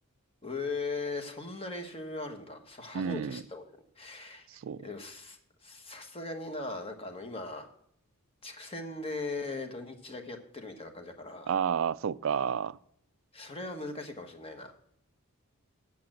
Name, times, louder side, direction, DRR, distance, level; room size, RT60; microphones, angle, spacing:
voice 1, 0.4-3.6 4.0-4.5 4.8-7.7 8.4-11.5 13.3-14.7, left 3 dB, 25° left, 1.2 m, -39 dB
voice 2, 2.9-3.4 4.5-4.8 11.5-12.8, right 7 dB, 60° right, 0.3 m, -30 dB
8.7 x 7.3 x 7.6 m
head